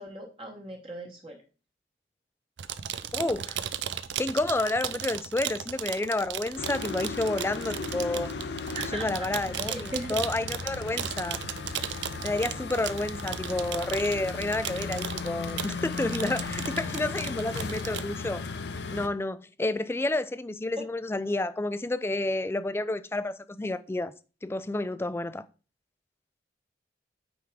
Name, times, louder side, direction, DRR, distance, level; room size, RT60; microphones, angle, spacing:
voice 1, 0.0-1.4 8.7-9.3 9.6-10.2 20.8-20.9, right 1 dB, 30° right, 1.1 m, -38 dB
sound 1, 2.6-18.1, right 9 dB, 80° right, 0.5 m, -36 dB
voice 2, 3.1-3.6 4.2-8.3 8.9-11.4 12.2-18.4 18.9-24.1 24.4-25.5, left 2 dB, 15° left, 0.3 m, -30 dB
sound 2, 6.6-19.1, left 4 dB, 70° left, 0.7 m, -36 dB
9.1 x 3.6 x 4.7 m
head